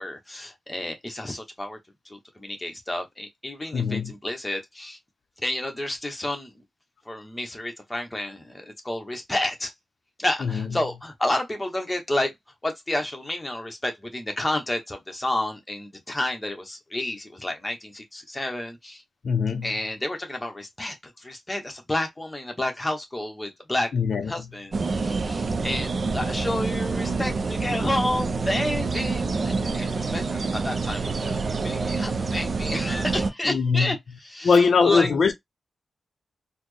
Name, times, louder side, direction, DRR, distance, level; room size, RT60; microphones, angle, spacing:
voice 1, 0.0-1.8 2.0-5.0 5.4-6.6 7.1-9.7 10.2-12.3 12.6-19.0 19.6-23.9 24.3-34.0 34.2-35.1, left 1 dB, 15° left, 0.9 m, -30 dB
voice 2, 3.7-4.1 10.4-10.7 19.2-19.7 23.9-24.3 33.4-33.9 34.4-35.3, left 5 dB, 70° left, 0.5 m, -21 dB
sound 1, 24.7-33.3, right 4 dB, 50° right, 0.4 m, -27 dB
4.1 x 2.0 x 3.1 m
wide cardioid pair, 115°, 0 cm